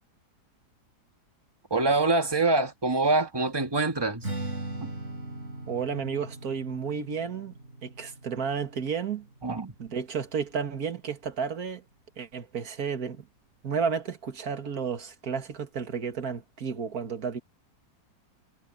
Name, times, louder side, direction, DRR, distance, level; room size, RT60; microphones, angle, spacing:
voice 1, 1.7-4.3 4.8-4.9 9.4-9.7, right 3 dB, 15° right, 1.8 m, -25 dB
Strum, 4.2-10.5, right 2 dB, 45° right, 4.2 m, -40 dB
voice 2, 5.7-7.5 7.8-9.3 9.8-11.8 12.2-13.2 13.6-17.4, right 6 dB, 60° right, 2.3 m, -32 dB
omnidirectional pair, 1.8 m